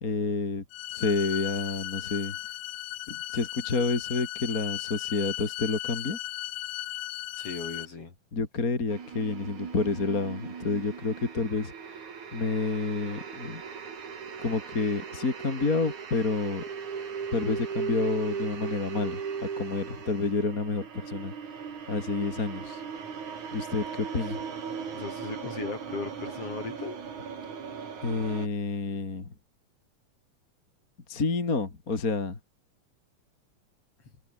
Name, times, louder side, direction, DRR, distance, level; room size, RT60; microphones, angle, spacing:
voice 1, 0.0-0.6 0.9-2.4 3.1-6.2 8.3-11.7 12.3-13.6 14.4-16.6 17.3-21.3 21.9-22.8 23.5-24.4 28.0-29.3 31.1-32.4, left 3 dB, 25° left, 3.1 m, -29 dB
sound 1, 0.7-7.9, left 15 dB, 80° left, 2.4 m, -36 dB
voice 2, 7.4-8.1 24.9-27.0, left 4 dB, 45° left, 4.9 m, -37 dB
sound 2, 8.9-28.5, right 6 dB, 65° right, 4.8 m, -38 dB
omnidirectional pair, 3.7 m